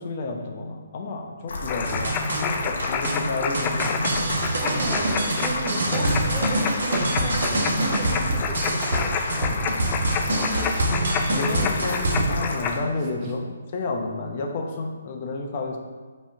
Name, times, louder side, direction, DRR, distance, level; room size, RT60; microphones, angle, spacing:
voice 1, 0.0-4.6 11.4-15.8, left 3 dB, 40° left, 2 dB, 1.0 m, -31 dB
sound 1, 1.5-12.8, left 2 dB, 65° left, 1.2 m, -32 dB
sound 2, 1.7-12.7, left 6 dB, 25° left, 0.4 m, -30 dB
sound 3, 1.8-12.3, right 1 dB, 70° right, 1.3 m, -26 dB
voice 2, 4.6-9.6 10.3-11.2 11.5-12.4 13.2-13.3, right 2 dB, 25° right, -2 dB, 1.3 m, -35 dB
6.2 x 3.4 x 5.7 m, 1.4 s
hypercardioid pair, 145°, 0 cm